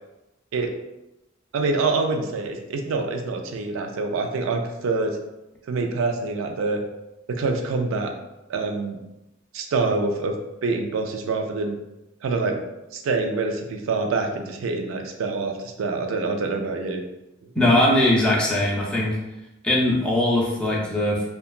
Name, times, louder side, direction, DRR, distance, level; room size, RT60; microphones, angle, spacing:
voice 1, 1.5-5.2 5.7-6.8 7.3-8.1 8.5-9.0 9.5-10.4 10.6-11.8 12.2-12.6 12.9-17.0, right 3 dB, 80° right, 4 dB, 0.4 m, -26 dB
voice 2, 17.5-19.2 19.6-21.2, left 1 dB, 5° left, -5 dB, 0.5 m, -20 dB
2.8 x 2.2 x 2.4 m, 0.95 s
head